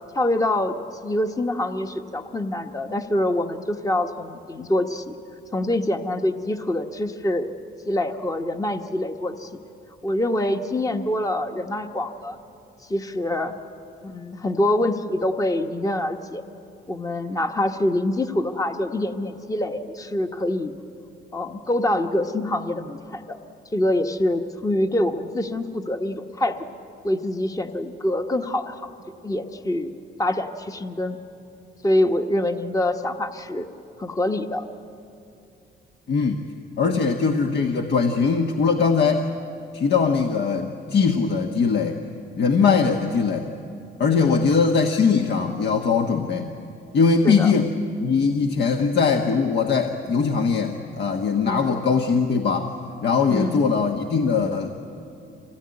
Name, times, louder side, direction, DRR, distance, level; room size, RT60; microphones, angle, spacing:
voice 1, 0.1-0.8 1.0-5.2 5.5-7.5 7.9-9.5 10.0-12.4 12.8-13.5 14.0-16.4 16.9-20.7 21.3-23.4 23.7-26.7 27.0-28.9 29.2-29.9 30.2-31.2 31.8-33.7 34.0-34.6 42.6-42.9 44.2-44.4 47.2-47.5 51.4-51.8 53.3-53.6, left 1 dB, 15° left, 6 dB, 1.1 m, -25 dB
voice 2, 36.1-36.4 36.8-39.3 39.7-42.0 42.3-43.5 44.0-46.5 46.9-47.7 48.0-52.7 53.0-54.7, left 5 dB, 60° left, 3 dB, 1.3 m, -21 dB
25.5 x 18.0 x 9.7 m, 2.7 s
cardioid pair, 90°, 20 cm